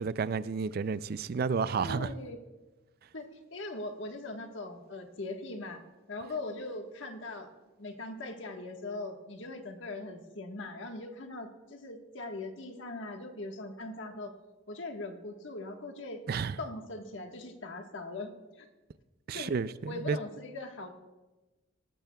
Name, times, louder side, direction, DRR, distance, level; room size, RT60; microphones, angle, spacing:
voice 1, 0.0-2.1 16.3-16.6 19.3-20.2, right 5 dB, 50° right, 0.4 m, -31 dB
voice 2, 1.8-2.4 3.1-5.8 6.1-7.5 7.8-14.3 14.7-16.2 16.6-18.7 19.3-19.5 19.9-20.9, left 2 dB, 70° left, 1.4 m, -40 dB
18.5 x 13.5 x 2.3 m
head